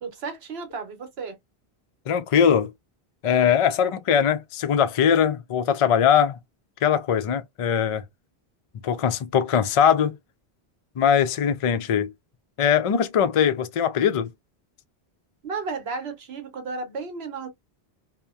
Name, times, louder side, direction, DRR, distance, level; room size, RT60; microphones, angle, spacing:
voice 1, 0.0-1.4 15.4-17.5, right 4 dB, 75° right, 1.1 m, -33 dB
voice 2, 2.1-2.7 3.2-6.4 6.8-8.0 8.8-10.1 11.0-12.1 12.6-14.3, left 8 dB, 65° left, 0.3 m, -21 dB
2.8 x 2.1 x 2.3 m
omnidirectional pair, 1.1 m